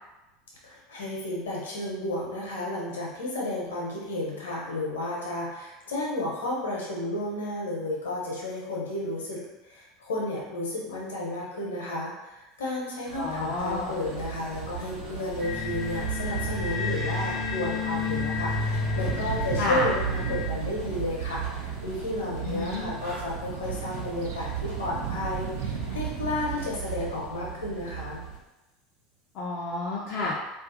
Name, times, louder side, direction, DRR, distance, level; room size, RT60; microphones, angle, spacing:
voice 1, 0.6-28.2, left 1 dB, 70° left, -4 dB, 0.8 m, -32 dB
sound 1, 13.1-28.4, right 7 dB, 80° right, 1.0 m, -36 dB
voice 2, 13.2-13.9 19.6-19.9 22.4-22.9 29.3-30.3, left 2 dB, 45° left, -5 dB, 0.4 m, -30 dB
sound 2, 15.4-20.5, left 5 dB, 15° right, 0.7 m, -31 dB
sound 3, 19.0-26.4, right 6 dB, 60° right, 0.3 m, -36 dB
2.4 x 2.3 x 2.6 m, 1.0 s
figure-of-eight pair, 75°, 0 cm